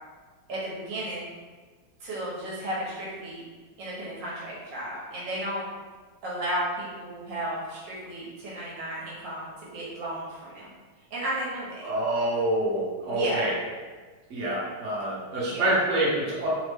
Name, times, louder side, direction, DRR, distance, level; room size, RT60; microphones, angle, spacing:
voice 1, 0.5-1.3 2.0-3.4 3.8-5.7 6.2-10.7 11.1-11.8 13.1-13.4 15.4-15.7, right 1 dB, 70° right, -6 dB, 1.4 m, -33 dB
voice 2, 11.8-13.5 14.3-16.5, right 1 dB, 50° right, -7 dB, 1.1 m, -26 dB
3.4 x 2.0 x 3.3 m, 1.4 s
omnidirectional pair, 2.1 m